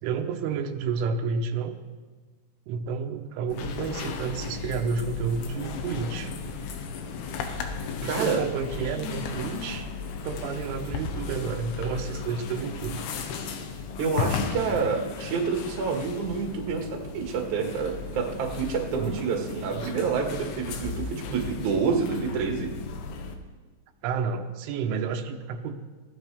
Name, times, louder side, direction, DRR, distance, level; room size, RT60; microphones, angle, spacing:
voice 1, 0.0-1.8 2.7-6.3 8.0-9.9 10.2-13.0 18.9-19.2 19.7-19.9 24.0-25.8, right 5 dB, 90° right, 5 dB, 3.4 m, -30 dB
sound 1, 3.5-23.4, left 5 dB, 80° left, 3.4 m, -35 dB
voice 2, 8.0-8.4 14.0-22.7, right 5 dB, 55° right, 1 dB, 2.6 m, -28 dB
21.5 x 17.0 x 3.5 m, 1.4 s
omnidirectional pair, 5.4 m